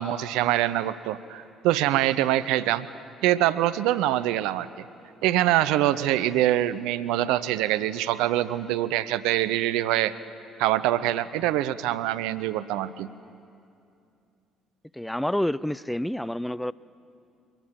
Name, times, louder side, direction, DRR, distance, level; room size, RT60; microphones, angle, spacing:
voice 1, 0.0-2.9 3.2-4.8 5.2-10.2 10.6-13.1, right 14 dB, 65° right, 15 dB, 0.6 m, -24 dB
voice 2, 14.9-16.7, left 1 dB, 5° left, 19 dB, 0.4 m, -28 dB
23.0 x 19.0 x 7.5 m, 2.6 s
figure-of-eight pair, 50°, 0 cm